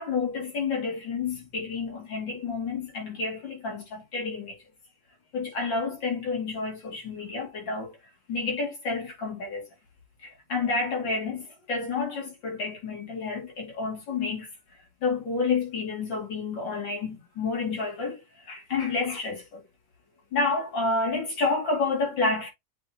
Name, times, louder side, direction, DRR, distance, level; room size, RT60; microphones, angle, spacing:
voice 1, 0.0-4.6 5.3-8.0 8.3-9.6 10.2-14.5 15.0-18.2 18.5-19.6 20.3-22.5, left 4 dB, 70° left, 3.2 m, -29 dB
8.4 x 3.9 x 2.9 m
omnidirectional pair, 2.1 m